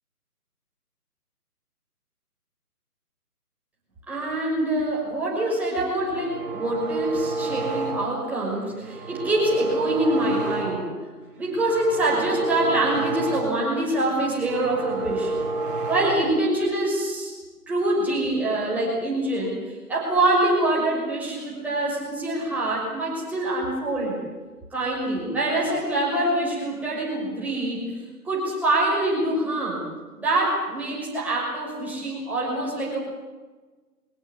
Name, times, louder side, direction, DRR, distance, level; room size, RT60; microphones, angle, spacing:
voice 1, 4.1-10.9 11.4-15.3 15.9-17.3 17.7-19.6 19.9-24.2 24.7-27.8 28.2-29.8 30.2-33.0, right 1 dB, 5° right, -5 dB, 5.9 m, -25 dB
sound 1, 6.0-8.3 8.7-11.1 11.4-13.8 14.1-16.5, right 2 dB, 35° right, 3.6 m, -30 dB
24.0 x 19.5 x 8.4 m, 1.3 s
figure-of-eight pair, 155°, 47 cm